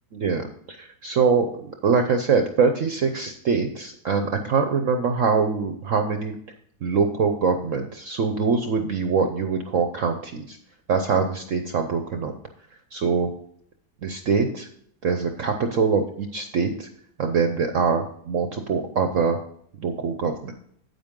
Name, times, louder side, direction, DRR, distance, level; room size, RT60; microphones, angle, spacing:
voice 1, 0.1-6.4 6.8-10.6 10.9-12.3 12.9-13.3 14.0-14.7 15.0-16.9 17.2-19.4 19.8-20.5, right 5 dB, 55° right, 6 dB, 1.0 m, -23 dB
9.3 x 8.5 x 3.7 m, 0.65 s
omnidirectional pair, 1.9 m